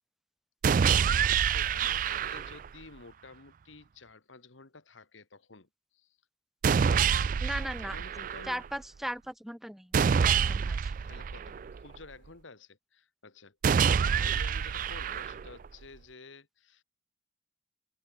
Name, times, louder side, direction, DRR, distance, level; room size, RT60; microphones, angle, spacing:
sound 1, 0.6-2.7 6.6-8.7 9.9-12.0 13.6-15.7, right 7 dB, 45° right, 0.3 m, -27 dB
voice 1, 1.1-6.2 6.7-7.2 7.8-8.6 11.0-16.8, left 3 dB, 90° left, 1.8 m, -52 dB
voice 2, 7.4-8.0 8.5-10.9, equal, ahead, 1.2 m, -38 dB
open air
head